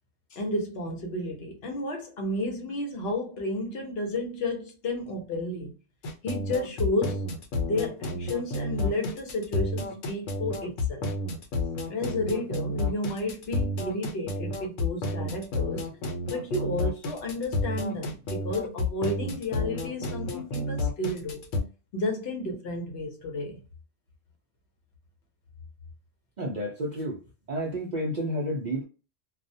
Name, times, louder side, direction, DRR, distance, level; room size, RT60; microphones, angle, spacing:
voice 1, 0.3-5.7 6.2-7.3 7.6-11.1 11.9-15.8 16.3-21.4 21.9-23.6, left 1 dB, 60° left, 0.9 m, -32 dB
sound 1, 6.0-21.6, left 2 dB, 90° left, 1.0 m, -31 dB
voice 2, 26.4-27.2 27.5-28.8, equal, 60° right, 0.5 m, -30 dB
2.3 x 2.0 x 2.6 m
omnidirectional pair, 1.3 m